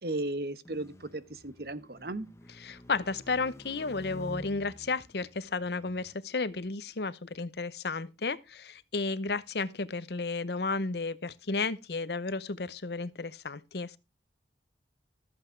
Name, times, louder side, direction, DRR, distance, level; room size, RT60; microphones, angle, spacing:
voice 1, 0.0-2.3, right 2 dB, 60° right, 1.1 m, -35 dB
sound 1, 0.7-6.1, left 1 dB, 15° left, 1.0 m, -49 dB
voice 2, 2.6-14.0, left 3 dB, 70° left, 0.8 m, -33 dB
14.0 x 7.8 x 4.5 m
head